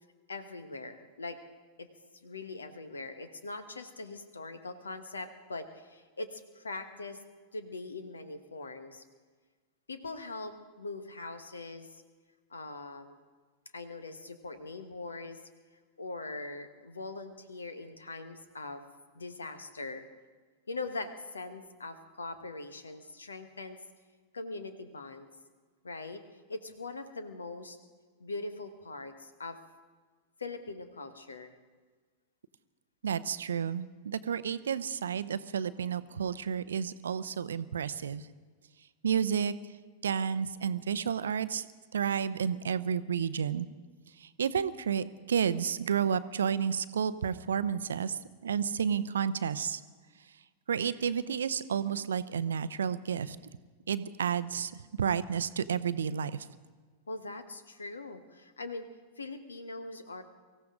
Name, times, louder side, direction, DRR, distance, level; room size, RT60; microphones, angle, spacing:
voice 1, 0.3-1.4 1.8-1.9 2.1-7.2 7.5-9.0 9.9-12.0 12.5-13.2 13.7-15.4 16.0-18.8 19.1-20.0 20.7-23.8 24.3-25.3 25.8-26.2 26.5-27.8 28.2-29.6 30.4-31.6 57.1-58.8 59.2-60.2, left 3 dB, 75° left, 10 dB, 1.3 m, -41 dB
voice 2, 33.0-38.2 39.0-39.5 40.0-41.7 41.9-43.7 44.4-49.8 50.7-53.4 53.9-54.7 55.0-56.3, right 7 dB, 65° right, 16 dB, 0.6 m, -31 dB
24.0 x 15.0 x 3.8 m, 1.4 s
figure-of-eight pair, 90°, 0 cm